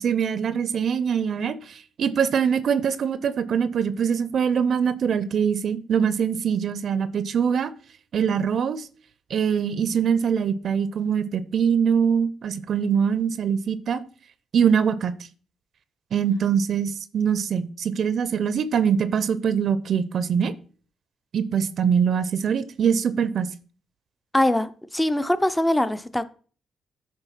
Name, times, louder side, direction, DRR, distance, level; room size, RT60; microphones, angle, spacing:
voice 1, 0.0-7.7 8.1-8.9 9.3-14.0 14.5-15.1 16.1-20.5 21.3-23.5, right 7 dB, 60° right, 0.6 m, -23 dB
voice 2, 24.3-26.3, left 1 dB, 10° left, 0.6 m, -22 dB
8.4 x 3.2 x 5.7 m
cardioid pair, 90°, 0 cm